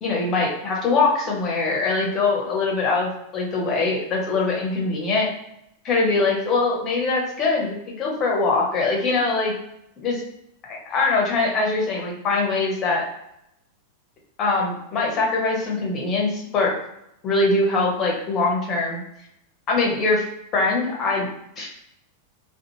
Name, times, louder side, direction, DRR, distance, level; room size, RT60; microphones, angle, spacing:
voice 1, 0.0-5.3 5.8-9.5 10.0-10.1 10.6-13.0 14.4-16.7 17.2-19.0 19.7-20.2 20.5-21.3 21.6-21.7, left 3 dB, 30° left, -1 dB, 0.9 m, -22 dB
2.5 x 2.3 x 3.1 m, 0.79 s
figure-of-eight pair, 90°, 0 cm